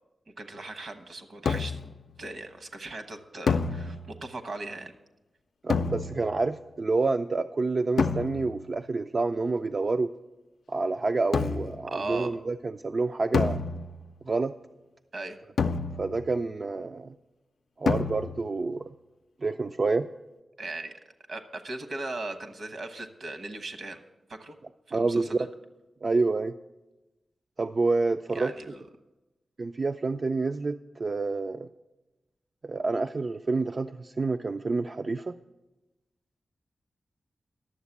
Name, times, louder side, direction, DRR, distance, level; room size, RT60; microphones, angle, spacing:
voice 1, 0.4-1.8 2.2-4.9 11.9-12.3 15.1-15.4 20.6-20.9 21.3-24.0 24.3-24.5 24.9-25.5 28.3-28.8, right 2 dB, 65° right, 8 dB, 1.0 m, -38 dB
sound 1, 1.5-2.0 3.5-4.3 5.7-6.5 8.0-8.7 11.3-11.9 13.3-14.2 15.6-16.4 17.9-18.6, left 5 dB, 80° left, 0.4 m, -29 dB
voice 2, 5.6-10.1 10.7-13.6 14.3-14.5 16.0-17.1 17.8-18.9 19.4-20.1 24.9-25.3 26.0-26.6 27.6-28.5 29.6-31.7 32.6-35.3, right 3 dB, 45° right, 7 dB, 0.3 m, -28 dB
11.0 x 7.3 x 7.1 m, 1.1 s
wide cardioid pair, 90°, 0 cm